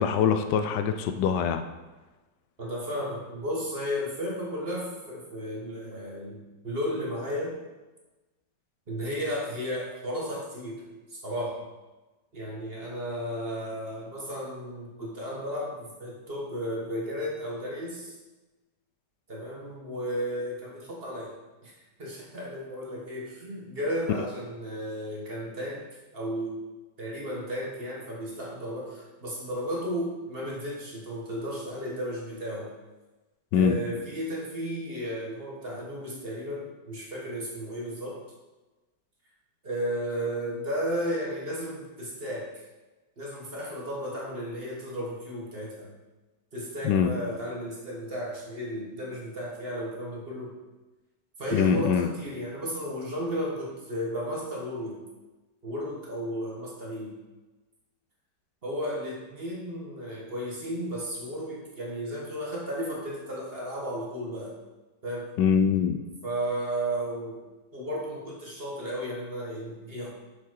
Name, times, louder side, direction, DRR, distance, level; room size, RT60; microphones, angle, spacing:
voice 1, 0.0-1.6 33.5-33.8 46.8-47.1 51.5-52.1 65.4-66.0, left 7 dB, 80° left, 8 dB, 1.2 m, -23 dB
voice 2, 2.6-7.6 8.9-10.8 11.1-11.6 12.3-18.2 19.3-21.3 21.6-21.7 22.0-25.8 26.1-26.6 27.0-32.7 33.5-38.2 39.6-42.5 43.2-45.9 46.5-50.6 51.4-55.0 55.6-57.1 58.6-64.5 65.0-65.3 66.2-67.4 67.7-70.1, equal, 35° right, -3 dB, 1.4 m, -34 dB
6.7 x 4.9 x 4.5 m, 1.2 s
omnidirectional pair, 1.9 m